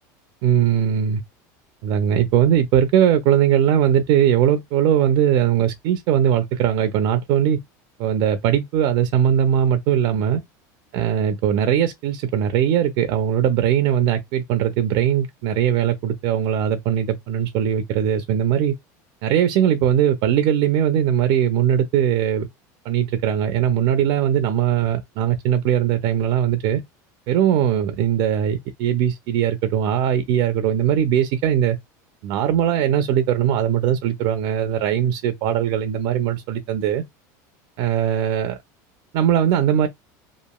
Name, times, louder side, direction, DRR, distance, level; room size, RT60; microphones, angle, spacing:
voice 1, 0.4-1.2 1.8-7.6 8.0-10.4 10.9-18.7 19.2-22.5 22.8-26.8 27.3-31.8 32.2-37.0 37.8-38.6 39.1-39.9, right 9 dB, 60° right, 0.4 m, -20 dB
2.9 x 2.5 x 2.2 m
supercardioid pair, 120°, 10 cm